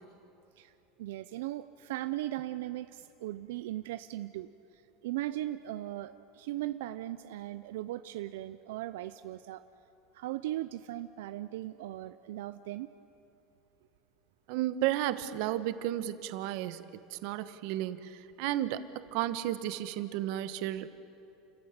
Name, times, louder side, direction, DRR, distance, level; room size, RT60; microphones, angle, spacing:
voice 1, 1.0-4.5 5.0-9.6 10.1-12.9, right 15 dB, 90° right, 12 dB, 0.6 m, -38 dB
voice 2, 14.5-16.8 17.1-20.9, right 13 dB, 60° right, 13 dB, 1.1 m, -33 dB
29.5 x 15.0 x 8.8 m, 2.9 s
supercardioid pair, 160°, 0 cm